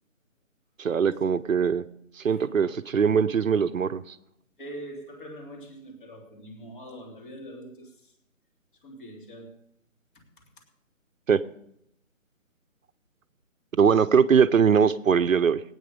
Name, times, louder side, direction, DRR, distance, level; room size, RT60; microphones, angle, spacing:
voice 1, 0.8-1.8 2.2-4.0 11.3-11.4 13.8-15.6, right 6 dB, 70° right, 0.8 m, -21 dB
voice 2, 4.6-8.1 8.8-9.6 10.1-10.5, right 1 dB, 35° left, 3.0 m, -43 dB
19.5 x 9.0 x 5.2 m
figure-of-eight pair, 160°, 41 cm